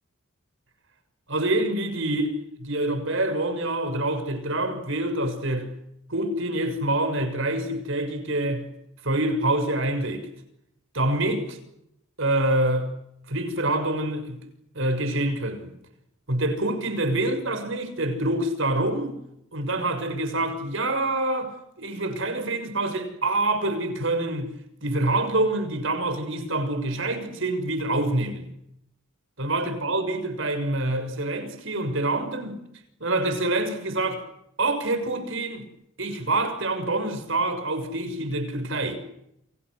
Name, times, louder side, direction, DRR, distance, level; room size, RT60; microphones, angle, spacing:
voice 1, 1.3-5.7 6.1-8.7 9.0-10.3 10.9-11.6 12.2-12.9 13.3-14.4 14.7-15.7 16.3-19.2 19.5-24.5 24.8-28.5 29.4-32.6 33.0-34.2 34.6-35.6 36.0-39.0, right 2 dB, 65° right, 6.4 m, -26 dB
29.5 x 28.0 x 6.4 m
head